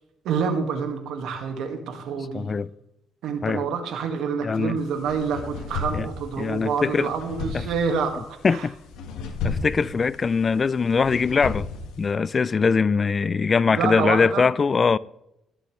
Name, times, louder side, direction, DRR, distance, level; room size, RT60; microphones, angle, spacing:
voice 1, 0.2-2.5 3.2-8.2 8.5-8.7 13.7-14.5, right 6 dB, 85° right, 1.9 m, -27 dB
voice 2, 2.3-2.7 3.4-3.6 4.4-4.8 5.9-6.1 6.4-7.1 7.5-7.6 8.4-8.7 9.4-11.7 12.0-15.0, left 5 dB, 35° left, 0.4 m, -22 dB
sound 1, 4.8-12.1, left 4 dB, 90° left, 1.4 m, -35 dB
18.0 x 7.1 x 3.2 m
cardioid pair, 90°, 0 cm